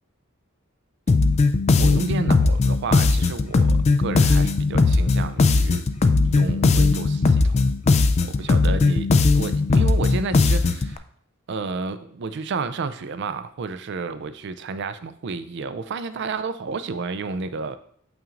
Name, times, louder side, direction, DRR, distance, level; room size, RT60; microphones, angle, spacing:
sound 1, 1.1-10.9, left 3 dB, 30° left, 0.3 m, -18 dB
voice 1, 1.8-5.8 6.2-7.6 8.2-11.0 11.5-17.8, right 4 dB, 55° right, 12 dB, 0.4 m, -31 dB
7.0 x 5.9 x 2.5 m, 0.63 s
head